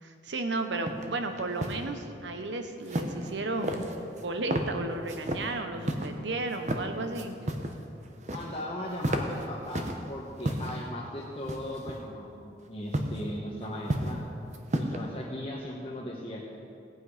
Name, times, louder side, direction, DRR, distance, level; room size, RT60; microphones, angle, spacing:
voice 1, 0.0-7.4, right 2 dB, 85° right, 7 dB, 1.0 m, -34 dB
sound 1, 0.9-1.0 1.4-1.8 2.9-3.3 3.6-4.2 4.5-4.7 5.1-5.4 5.8-6.1 6.5-6.8 7.1-7.8 8.0-8.6 8.9-10.0 10.4-10.8 11.5-11.9 12.9-13.2 13.6-14.2 14.5-15.0, right 1 dB, 40° right, 0.9 m, -32 dB
voice 2, 8.3-14.2 14.7-16.4, left 1 dB, 30° left, -4 dB, 1.2 m, -38 dB
17.5 x 8.6 x 5.0 m, 2.6 s
head